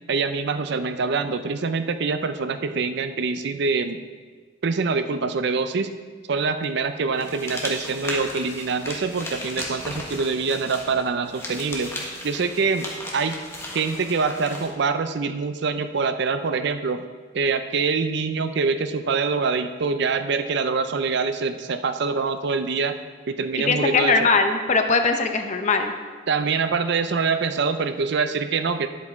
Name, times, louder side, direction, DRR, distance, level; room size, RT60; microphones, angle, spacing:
voice 1, 0.1-4.0 4.6-6.0 6.3-11.9 12.2-13.4 13.7-17.0 17.3-23.0 23.3-24.3 26.3-28.9, right 4 dB, 65° right, 9 dB, 0.5 m, -25 dB
sound 1, 7.2-14.7, left 1 dB, 15° left, 1.4 m, -35 dB
voice 2, 23.7-25.9, left 4 dB, 40° left, 5 dB, 0.7 m, -20 dB
9.8 x 8.2 x 3.6 m, 1.5 s
head